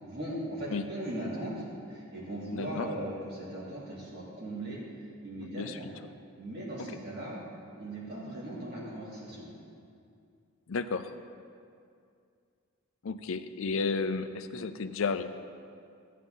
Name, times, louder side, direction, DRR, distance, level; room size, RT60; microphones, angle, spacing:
voice 1, 0.0-4.8 5.2-5.9 6.4-7.4 7.7-9.5, right 1 dB, 45° right, -7 dB, 3.0 m, -38 dB
voice 2, 2.5-2.9 5.4-6.1 10.7-11.1 13.0-15.3, left 4 dB, 65° left, 10 dB, 0.5 m, -33 dB
13.0 x 9.3 x 3.9 m, 2.4 s
head